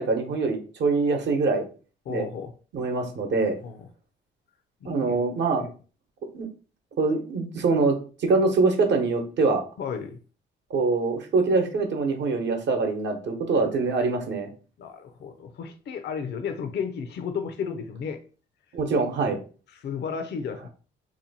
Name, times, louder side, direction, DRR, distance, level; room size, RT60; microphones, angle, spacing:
voice 1, 0.0-1.7 2.1-2.3 2.7-3.6 4.8-5.6 6.3-6.5 7.0-9.6 10.7-14.5 18.7-19.4, right 3 dB, 65° right, 4 dB, 0.9 m, -24 dB
voice 2, 2.1-2.5 3.6-3.9 4.8-5.2 5.5-5.7 9.8-10.2 14.8-18.2 19.7-20.7, left 6 dB, 60° left, 7 dB, 0.5 m, -33 dB
2.8 x 2.2 x 4.0 m, 0.37 s
cardioid pair, 90°, 20 cm